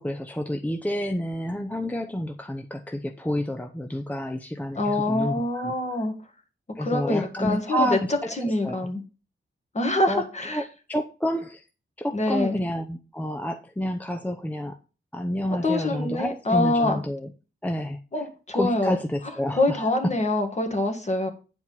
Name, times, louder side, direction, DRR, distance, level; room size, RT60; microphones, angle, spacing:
voice 1, 0.0-5.7 6.8-8.8 10.1-10.3 10.5-10.6 10.9-11.6 12.0-14.7 15.1-17.3 17.6-18.0 18.5-20.1, equal, 5° left, 4 dB, 0.7 m, -29 dB
voice 2, 4.8-6.1 6.8-8.0 8.3-9.0 9.7-10.6 12.1-12.6 15.6-17.0 18.1-19.0 19.6-21.3, left 2 dB, 35° left, 3 dB, 1.8 m, -25 dB
9.5 x 4.7 x 5.6 m, 0.34 s
wide cardioid pair, 120°, 20 cm